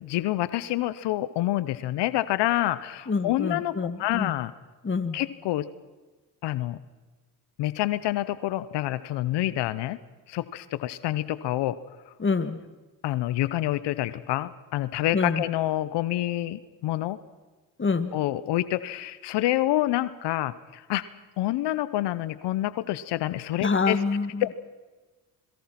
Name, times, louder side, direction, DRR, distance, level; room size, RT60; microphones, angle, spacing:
voice 1, 0.0-4.5 5.1-5.7 6.4-6.8 7.6-10.0 10.3-11.8 13.0-17.2 18.1-21.0 21.4-24.0 24.4-24.5, left 15 dB, 85° left, 15 dB, 1.0 m, -27 dB
voice 2, 3.1-4.3 4.8-5.2 12.2-12.6 15.1-15.4 17.8-18.1 23.6-24.4, left 4 dB, 30° left, 11 dB, 2.0 m, -26 dB
27.5 x 22.0 x 6.0 m, 1.2 s
supercardioid pair, 70°, 40 cm